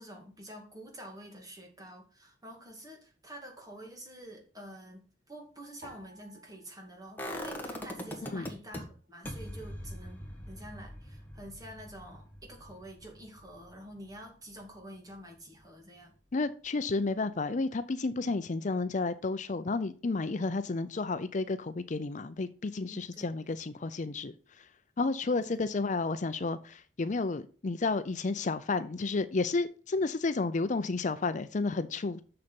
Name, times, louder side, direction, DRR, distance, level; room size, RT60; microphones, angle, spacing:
voice 1, 0.0-16.1 22.8-23.6 25.5-25.6, right 1 dB, 20° right, 2.3 m, -48 dB
sound 1, 5.8-8.3 8.6-9.5 10.1-10.5, right 1 dB, 55° right, 3.7 m, -57 dB
sound 2, 7.2-8.8 9.2-15.1 15.4-15.5, equal, 10° left, 1.6 m, -42 dB
voice 2, 16.3-24.3 25.0-32.2, left 3 dB, 45° left, 0.5 m, -31 dB
6.8 x 6.8 x 5.3 m
head